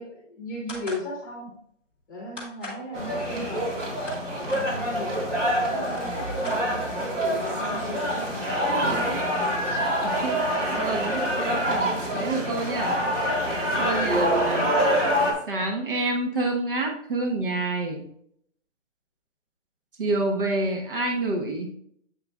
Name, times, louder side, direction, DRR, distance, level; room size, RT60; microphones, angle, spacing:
voice 1, 0.0-1.5 2.1-3.7 4.3-9.2 10.5-11.0 12.4-12.7 13.6-13.9, equal, 15° left, -3 dB, 1.4 m, -36 dB
sound 1, 0.7-1.1 2.4-2.8 3.7-4.7 5.5-5.6 5.8-7.0, left 2 dB, 10° right, 1.0 m, -40 dB
sound 2, 2.9-15.3, equal, 70° right, 3.0 m, -26 dB
voice 2, 10.0-11.2 11.5-13.4 13.8-14.7 15.5-18.1 20.0-21.7, right 2 dB, 45° right, 2 dB, 1.2 m, -28 dB
8.0 x 7.8 x 2.3 m, 0.68 s
hypercardioid pair, 175°, 37 cm